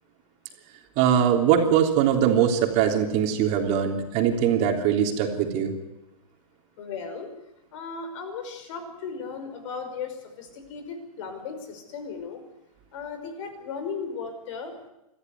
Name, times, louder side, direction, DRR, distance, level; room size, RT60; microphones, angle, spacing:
voice 1, 1.0-5.7, right 8 dB, 35° right, 3 dB, 3.4 m, -22 dB
voice 2, 6.8-7.3 7.7-12.4 12.9-14.7, left 5 dB, 50° left, 8 dB, 5.5 m, -36 dB
25.0 x 15.0 x 9.7 m, 0.93 s
hypercardioid pair, 120°, 20 cm